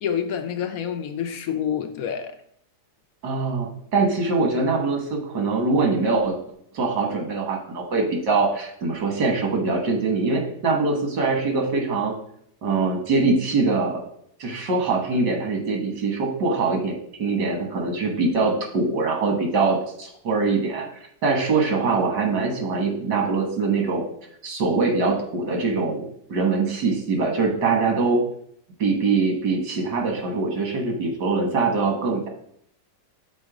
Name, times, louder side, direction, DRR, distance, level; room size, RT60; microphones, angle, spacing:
voice 1, 0.0-2.4, left 8 dB, 65° left, 1.0 m, -27 dB
voice 2, 3.2-6.4 6.7-12.1 12.6-14.0 14.4-20.9 21.2-24.0 24.4-28.2 28.8-32.3, right 3 dB, 90° right, 2.0 m, -23 dB
6.3 x 4.2 x 4.9 m
omnidirectional pair, 1.8 m